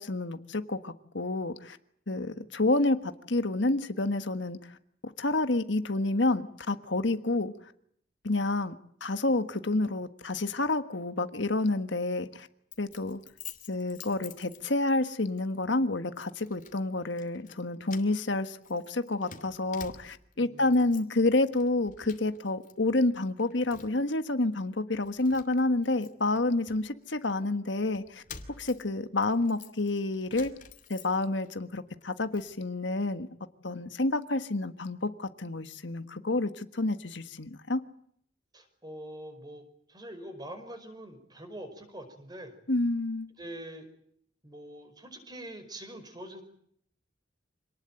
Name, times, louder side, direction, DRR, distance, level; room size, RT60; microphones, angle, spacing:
voice 1, 0.0-1.8 2.1-4.6 5.2-7.5 8.2-8.7 9.0-12.5 12.8-13.2 13.7-28.2 28.6-30.5 30.9-33.3 33.6-37.8 42.7-43.3, left 2 dB, 70° left, 9 dB, 1.5 m, -29 dB
Keys jangling, 12.7-15.0 15.4-15.6 16.2-16.8 17.1-17.6 17.9-20.3 20.7-21.2 21.5-22.7 23.0-24.1 24.6-24.7 25.0-27.4 27.9-31.5 31.9-32.5, left 7 dB, 45° left, 2.8 m, -49 dB
voice 2, 20.4-20.9 38.5-39.6 39.9-42.5 43.4-43.9 44.4-46.4, right 1 dB, 20° right, 8 dB, 5.2 m, -44 dB
26.5 x 19.5 x 9.1 m, 0.68 s
head